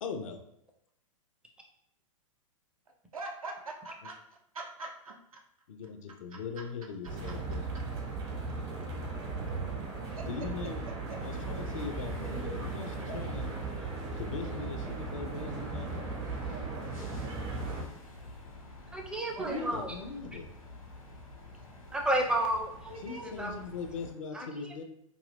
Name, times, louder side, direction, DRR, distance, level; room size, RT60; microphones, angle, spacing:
voice 1, 0.0-0.4 5.7-7.7 10.3-10.8 11.1-13.5 14.1-16.0 19.4-20.5 23.0-24.8, left 5 dB, 70° left, 6 dB, 0.5 m, -40 dB
voice 2, 3.1-5.4 6.3-6.6 7.3-7.4 10.2-10.3 10.9-11.2 12.2-12.4 19.3-19.7 22.8-23.3, right 2 dB, 85° right, 1 dB, 0.5 m, -43 dB
sound 1, 7.0-17.8, right 3 dB, 45° right, 0.8 m, -37 dB
sound 2, 11.2-24.1, left 2 dB, 85° left, 1.1 m, -48 dB
voice 3, 18.9-19.9 21.9-22.7 23.4-23.6 24.3-24.5, right 1 dB, 5° right, 0 dB, 0.4 m, -30 dB
2.5 x 2.2 x 3.3 m, 0.75 s
figure-of-eight pair, 105°, 18 cm